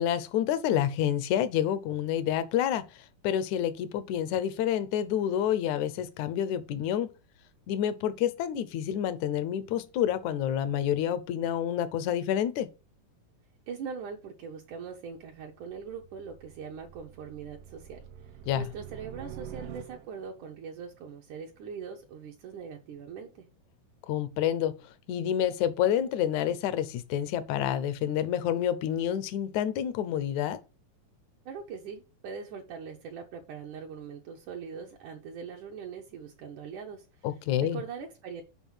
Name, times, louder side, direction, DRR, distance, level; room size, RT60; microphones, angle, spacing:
voice 1, 0.0-2.8 3.2-7.1 7.7-12.7 18.5-18.7 24.1-24.7 25.1-30.6 37.2-37.8, left 10 dB, 75° left, 1.9 m, -28 dB
voice 2, 13.7-18.1 18.5-23.5 31.5-37.1 37.6-38.4, right 6 dB, 70° right, 2.2 m, -41 dB
sound 1, 15.2-20.4, right 10 dB, 85° right, 2.6 m, -46 dB
7.2 x 5.3 x 5.5 m
omnidirectional pair, 4.0 m